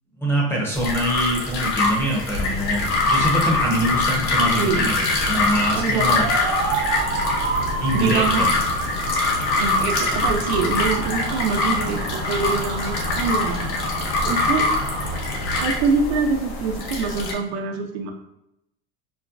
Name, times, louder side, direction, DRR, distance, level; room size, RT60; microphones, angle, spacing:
voice 1, 0.2-6.3 7.8-8.5, right 1 dB, 5° left, -3 dB, 0.7 m, -24 dB
sound 1, 0.8-17.3, left 3 dB, 85° left, 0.9 m, -24 dB
sound 2, 2.4-15.7, left 2 dB, 50° left, 0.8 m, -34 dB
voice 2, 4.5-4.8 5.7-6.0 7.9-8.5 9.6-13.6 13.9-14.7 15.6-18.1, right 5 dB, 75° right, 4 dB, 0.6 m, -25 dB
sound 3, 6.1-15.4, right 5 dB, 30° right, 0.4 m, -30 dB
4.1 x 2.2 x 2.4 m, 0.83 s
cardioid pair, 145°, 32 cm